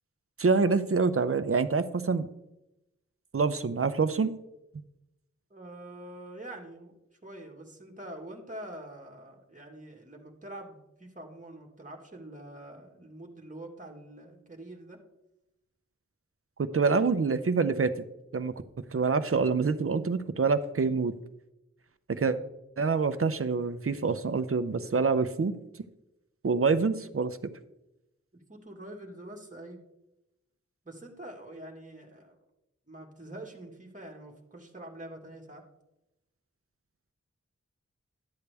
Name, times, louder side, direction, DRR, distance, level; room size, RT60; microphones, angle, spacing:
voice 1, 0.4-2.3 3.3-4.3 16.6-17.9 18.3-18.5 18.9-21.1 22.1-22.4 22.8-25.5 26.4-27.5, right 4 dB, 50° right, 11 dB, 0.7 m, -26 dB
voice 2, 5.5-7.0 7.2-15.0 22.1-22.4 28.5-29.8 30.8-32.4 32.9-35.6, right 1 dB, 25° right, 0 dB, 1.7 m, -45 dB
11.5 x 8.2 x 3.4 m, 0.91 s
wide cardioid pair, 55°, 29 cm